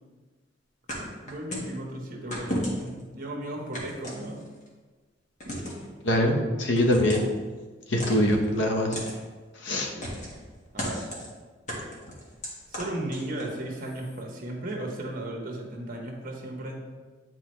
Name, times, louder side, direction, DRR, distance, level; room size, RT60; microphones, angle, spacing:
sound 1, 0.9-1.8 2.3-3.0 3.7-4.7 5.4-5.9 6.8-7.4 8.0-8.5 8.9-9.2 10.0-10.4 10.8-11.3 11.7-13.6, equal, 40° left, 1.6 m, -34 dB
voice 1, 1.2-4.4 5.4-5.5 9.9-10.2 10.7-11.0 12.7-16.8, right 1 dB, 50° right, 0 dB, 1.2 m, -36 dB
voice 2, 6.0-7.2 7.9-9.0 9.6-9.9, left 1 dB, 70° left, 2 dB, 1.0 m, -23 dB
9.0 x 4.4 x 3.2 m, 1.4 s
head